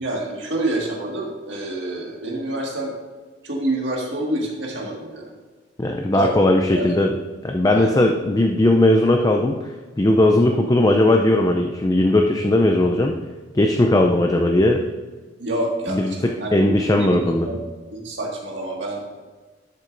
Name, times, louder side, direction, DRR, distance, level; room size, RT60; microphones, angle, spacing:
voice 1, 0.0-2.9 3.4-5.3 6.1-6.9 7.7-8.0 15.4-17.6 17.9-19.0, right 1 dB, 70° right, -1 dB, 1.8 m, -27 dB
voice 2, 5.8-7.1 7.4-9.6 10.0-13.2 13.5-14.8 15.9-17.5, left 1 dB, 20° left, 3 dB, 0.4 m, -18 dB
11.0 x 7.8 x 2.6 m, 1.4 s
head